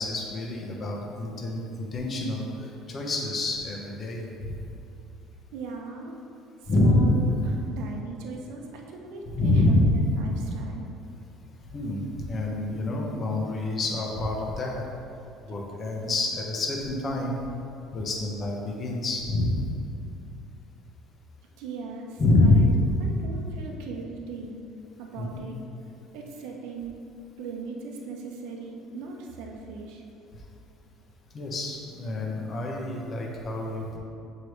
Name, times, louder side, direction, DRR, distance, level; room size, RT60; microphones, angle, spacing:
voice 1, 0.0-4.5 6.7-7.1 9.3-9.9 11.7-14.8 15.5-17.4 17.9-19.6 22.2-22.7 25.2-25.4 31.3-34.0, left 2 dB, 40° left, -1 dB, 1.1 m, -26 dB
voice 2, 5.5-6.2 6.6-10.9 21.6-22.7 23.0-24.6 25.0-25.6 26.1-27.0 27.4-30.0, right 4 dB, 80° right, 1 dB, 0.8 m, -39 dB
7.1 x 4.9 x 3.2 m, 2.6 s
cardioid pair, 110°, 0 cm